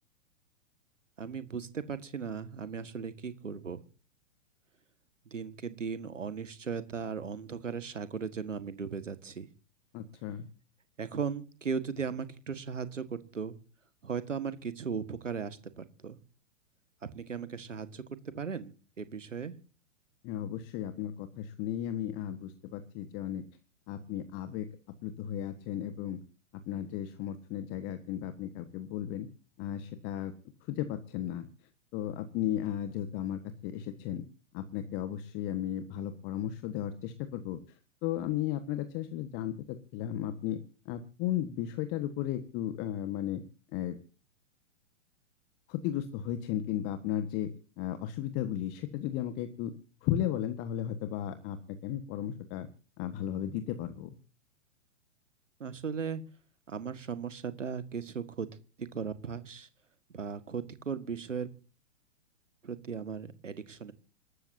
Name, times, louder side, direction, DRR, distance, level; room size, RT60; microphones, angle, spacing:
voice 1, 1.2-3.8 5.3-9.5 11.0-13.6 14.0-16.2 17.1-19.5 55.6-56.2 56.7-58.5 58.8-59.7 60.1-61.5 62.6-63.9, right 6 dB, 75° right, 12 dB, 1.8 m, -37 dB
voice 2, 9.9-10.5 20.2-23.4 23.9-24.7 25.0-26.2 26.7-29.3 29.6-30.3 30.7-31.5 31.9-34.2 34.5-37.6 38.0-39.5 39.9-40.6 40.8-43.4 43.7-44.0 45.7-47.5 47.8-49.7 50.0-52.7 53.0-54.1, left 11 dB, 30° left, 10 dB, 1.5 m, -35 dB
27.0 x 13.0 x 2.8 m, 0.38 s
figure-of-eight pair, 110°, 38 cm